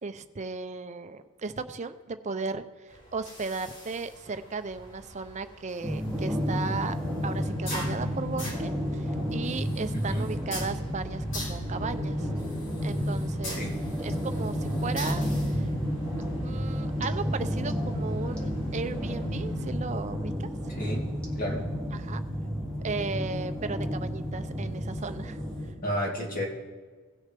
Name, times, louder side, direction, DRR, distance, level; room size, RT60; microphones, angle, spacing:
voice 1, 0.0-6.9 7.2-12.3 12.8-13.7 14.0-15.7 16.4-20.5 21.9-22.2 22.8-25.4, right 4 dB, 30° right, 10 dB, 0.5 m, -36 dB
sound 1, 2.9-19.7, left 1 dB, 55° left, 3.0 m, -44 dB
sound 2, 5.8-25.7, equal, 5° left, 1.8 m, -31 dB
voice 2, 25.8-26.5, equal, 40° left, -1 dB, 2.1 m, -30 dB
17.5 x 6.3 x 3.4 m, 1.4 s
head